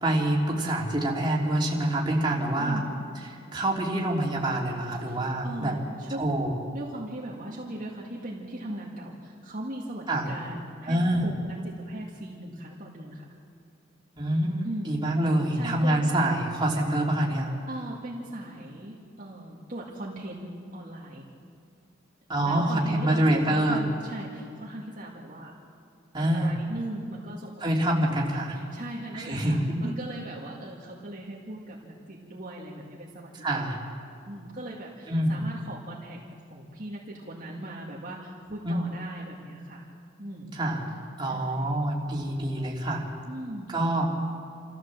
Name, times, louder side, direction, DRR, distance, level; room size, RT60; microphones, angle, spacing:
voice 1, 0.0-2.8 3.5-5.8 6.1-6.5 10.1-10.3 10.9-11.3 14.2-17.5 22.3-23.8 26.1-26.5 27.6-28.5 29.1-30.0 33.4-33.8 35.1-35.4 38.6-38.8 40.5-40.8 41.2-43.0 43.7-44.1, right 1 dB, 25° right, -3 dB, 3.2 m, -26 dB
voice 2, 2.6-3.0 5.1-6.2 6.7-13.2 14.6-15.0 15.5-16.1 17.7-21.3 22.4-25.5 26.2-27.6 28.3-36.2 36.5-39.9 40.2-40.6 41.2-41.8 43.2-43.7, right 1 dB, 45° right, -4 dB, 2.2 m, -39 dB
28.0 x 14.5 x 7.6 m, 2.3 s
head